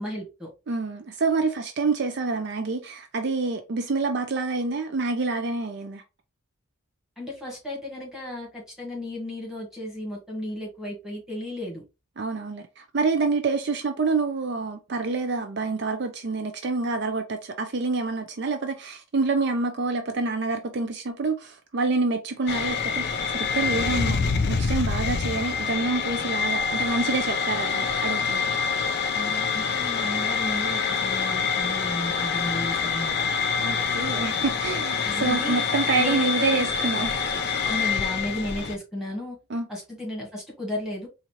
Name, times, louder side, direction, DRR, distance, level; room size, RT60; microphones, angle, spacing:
voice 1, 0.0-0.5 7.2-11.8 29.1-33.3 35.0-36.9 37.6-39.4 39.7-41.1, left 1 dB, ahead, 1.5 m, -34 dB
voice 2, 0.7-6.0 12.2-28.5 33.6-37.2 39.5-39.7, right 3 dB, 50° right, 0.4 m, -27 dB
sound 1, 22.5-38.8, left 5 dB, 50° left, 0.4 m, -26 dB
4.1 x 2.5 x 3.0 m
head